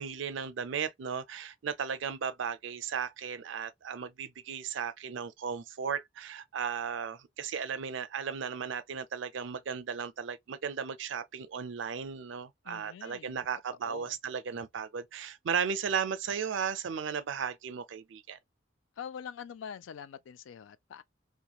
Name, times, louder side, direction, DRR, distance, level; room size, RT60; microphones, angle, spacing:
voice 1, 0.0-18.4, right 6 dB, 75° right, 0.4 m, -35 dB
voice 2, 12.7-13.4 13.8-14.1 19.0-21.0, left 7 dB, 80° left, 0.3 m, -44 dB
3.0 x 2.2 x 2.2 m
head